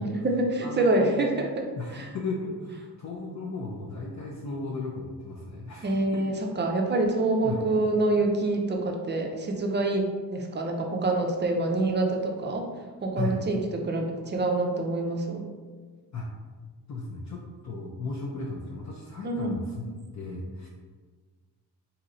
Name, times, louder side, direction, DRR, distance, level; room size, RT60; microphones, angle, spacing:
voice 1, 0.0-1.7 1.9-2.1 5.8-10.0 10.3-12.7 13.0-15.4 19.2-19.6, right 2 dB, 25° right, 2 dB, 0.5 m, -26 dB
voice 2, 0.6-1.3 1.8-6.2 7.4-7.6 13.2-13.3 16.1-16.3 16.9-20.7, left 3 dB, 45° left, -3 dB, 0.5 m, -35 dB
3.0 x 2.7 x 2.5 m, 1.5 s
cardioid pair, 70°, 40 cm